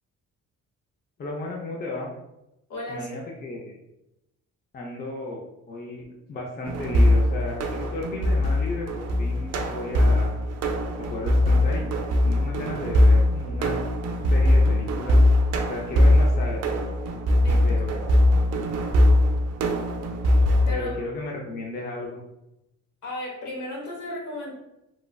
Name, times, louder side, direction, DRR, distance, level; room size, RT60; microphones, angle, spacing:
voice 1, 1.2-2.1 2.9-3.8 4.7-10.4 11.0-11.9 12.2-13.8 14.3-15.2 15.7-16.6 17.6-18.3 20.7-22.2, left 2 dB, 30° left, -1 dB, 0.5 m, -34 dB
voice 2, 2.7-3.1 17.4-17.7 20.7-20.9 23.0-24.5, left 1 dB, 70° left, -2 dB, 1.1 m, -34 dB
sound 1, 6.7-20.7, left 1 dB, 60° right, 0.4 m, -21 dB
3.1 x 2.4 x 2.2 m, 0.90 s
cardioid pair, 90°, 30 cm